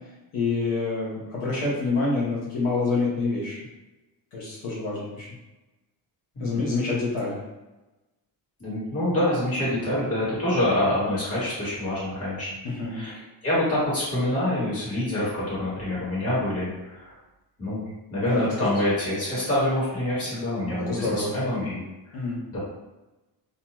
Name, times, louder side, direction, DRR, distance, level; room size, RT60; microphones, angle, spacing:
voice 1, 0.3-3.6 4.3-5.3 6.4-7.4 12.6-13.0 18.2-18.7 20.7-21.3 22.1-22.4, left 3 dB, 80° left, -6 dB, 0.9 m, -27 dB
voice 2, 8.6-12.5 12.9-17.1 17.6-17.8 18.1-21.8 22.1-22.2 22.5-22.6, left 1 dB, 35° left, -9 dB, 1.5 m, -26 dB
2.6 x 2.2 x 2.9 m, 1.1 s
cardioid pair, 155°, 44 cm